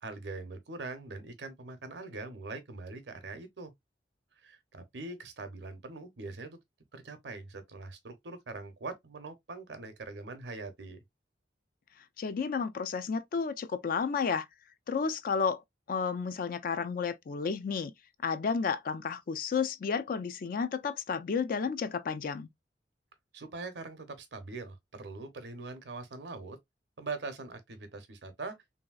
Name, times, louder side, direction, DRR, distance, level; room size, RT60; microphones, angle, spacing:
voice 1, 0.0-3.7 4.4-6.6 6.9-11.0 23.3-26.6 27.0-28.6, right 3 dB, 75° right, 0.7 m, -42 dB
voice 2, 12.2-14.5 14.9-15.6 15.9-17.9 18.2-22.5, left 5 dB, 50° left, 0.4 m, -32 dB
3.0 x 2.7 x 2.3 m
head